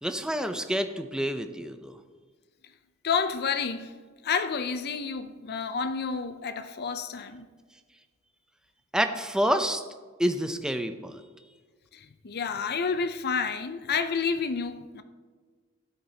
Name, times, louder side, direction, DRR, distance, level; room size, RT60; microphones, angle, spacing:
voice 1, 0.0-1.9 8.9-9.8 10.2-11.2, equal, 5° right, 0.6 m, -28 dB
voice 2, 3.0-3.9 4.2-7.5 11.9-15.0, left 5 dB, 50° left, 0.6 m, -30 dB
15.5 x 8.4 x 2.9 m
head